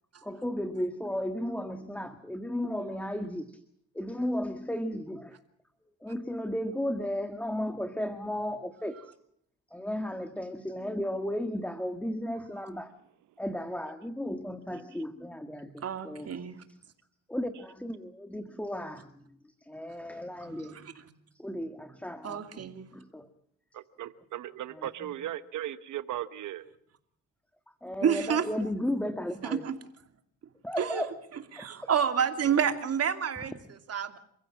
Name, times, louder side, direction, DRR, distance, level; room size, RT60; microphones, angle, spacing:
voice 1, 0.2-3.6 3.9-5.4 6.0-9.1 9.7-12.9 13.4-16.3 17.3-20.8 21.3-22.7 22.9-23.3 24.7-25.1 27.8-29.6 30.6-31.1 31.5-31.9, left 1 dB, 5° left, 9 dB, 1.6 m, -34 dB
voice 2, 2.6-3.0 15.8-16.6 20.0-21.1 22.2-23.0 28.0-28.5 29.4-29.8 30.8-31.1 31.5-34.2, right 8 dB, 55° right, 8 dB, 2.7 m, -30 dB
voice 3, 23.7-26.7, right 12 dB, 75° right, 14 dB, 1.1 m, -37 dB
28.5 x 15.5 x 7.5 m, 0.70 s
cardioid pair, 90°, 30 cm